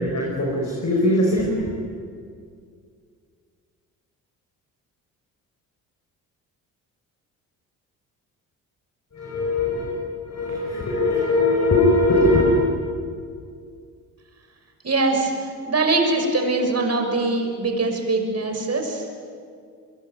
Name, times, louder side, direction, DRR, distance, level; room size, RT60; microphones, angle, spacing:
voice 1, 0.0-1.8 9.1-10.0 10.2-12.6, left 2 dB, 35° left, -1 dB, 6.1 m, -20 dB
voice 2, 14.8-19.0, right 3 dB, 35° right, 3 dB, 6.2 m, -22 dB
24.0 x 22.5 x 9.5 m, 2.2 s
hypercardioid pair, 50°, 45 cm